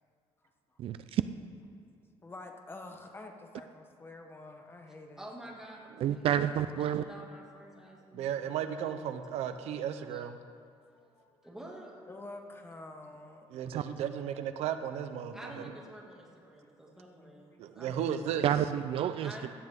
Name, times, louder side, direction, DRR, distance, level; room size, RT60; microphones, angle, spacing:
voice 1, 0.8-1.2 6.0-7.0 13.7-13.8 18.4-19.3, right 10 dB, 60° right, 11 dB, 0.4 m, -29 dB
voice 2, 2.2-5.3 10.9-11.4 12.1-13.5 17.2-17.6, left 2 dB, 20° left, 4 dB, 1.2 m, -48 dB
voice 3, 5.2-10.2 11.4-11.9 15.3-18.2 19.2-19.5, right 1 dB, 5° right, -3 dB, 2.4 m, -49 dB
voice 4, 8.1-10.4 13.5-15.7 17.6-18.5, right 9 dB, 85° right, 9 dB, 0.8 m, -35 dB
17.0 x 11.5 x 3.8 m, 2.5 s
cardioid pair, 135°, 11 cm